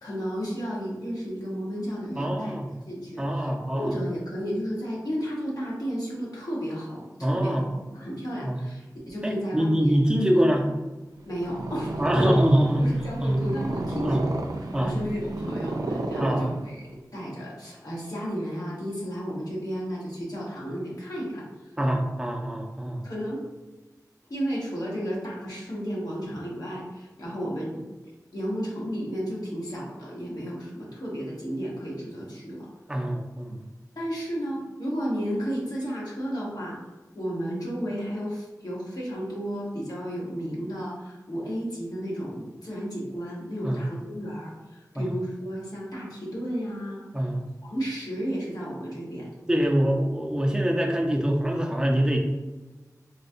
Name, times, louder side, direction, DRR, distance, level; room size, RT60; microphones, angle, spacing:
voice 1, 0.0-2.5 2.9-9.9 11.2-12.5 12.8-14.3 14.6-16.8 17.1-21.4 23.0-23.4 24.3-27.8 28.3-32.7 33.9-36.8 37.1-47.0 47.6-49.3, equal, 75° left, -6 dB, 1.2 m, -33 dB
voice 2, 2.2-2.7 3.2-4.0 7.2-7.7 8.4-8.6 9.2-10.7 12.0-12.9 13.2-13.4 14.0-14.2 14.7-14.9 16.2-16.6 21.8-23.1 32.9-33.6 43.6-43.9 45.0-45.1 47.1-47.4 49.5-52.2, equal, 10° right, 1 dB, 0.5 m, -24 dB
Purr, 11.2-16.9, right 2 dB, 75° right, 0.3 m, -32 dB
4.2 x 2.2 x 2.7 m, 1.1 s
wide cardioid pair, 65°, 7 cm